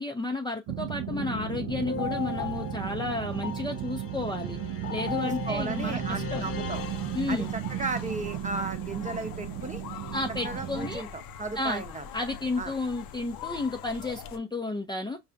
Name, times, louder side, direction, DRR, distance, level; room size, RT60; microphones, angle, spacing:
voice 1, 0.0-4.6 4.9-6.5 7.1-7.5 10.1-11.0 11.6-11.8 12.1-15.2, left 2 dB, 10° left, 0.5 m, -32 dB
sound 1, 0.7-11.0, right 13 dB, 55° right, 0.5 m, -35 dB
sound 2, 1.1-7.8, left 5 dB, 35° left, 0.9 m, -37 dB
voice 2, 5.2-6.8 7.3-9.8 10.4-12.1 12.6-12.7, right 3 dB, 20° right, 0.8 m, -35 dB
sound 3, 6.7-14.4, left 8 dB, 60° left, 0.6 m, -43 dB
5.4 x 2.3 x 2.5 m
supercardioid pair, 80°, 40 cm